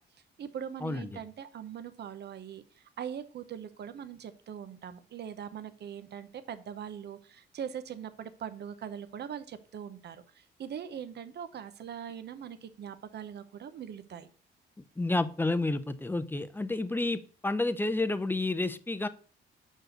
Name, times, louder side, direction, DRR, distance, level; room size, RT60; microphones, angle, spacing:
voice 1, 0.4-14.3, right 8 dB, 60° right, 11 dB, 0.9 m, -41 dB
voice 2, 15.0-19.1, left 2 dB, 10° left, 13 dB, 0.6 m, -30 dB
6.0 x 4.7 x 6.6 m, 0.42 s
cardioid pair, 90°, 20 cm